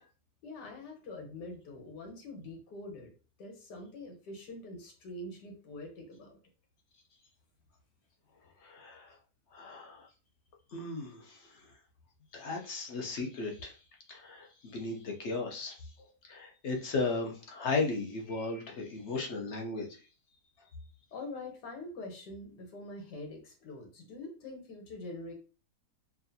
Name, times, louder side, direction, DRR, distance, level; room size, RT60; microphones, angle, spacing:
voice 1, 0.4-3.1 3.4-6.4 21.1-25.3, left 2 dB, 80° left, 2 dB, 1.6 m, -44 dB
voice 2, 8.6-9.1 9.5-10.1 10.7-11.4 12.3-13.8 14.1-15.8 16.3-19.9, left 3 dB, 55° left, 1 dB, 0.9 m, -35 dB
4.7 x 2.6 x 2.7 m, 0.35 s
omnidirectional pair, 1.8 m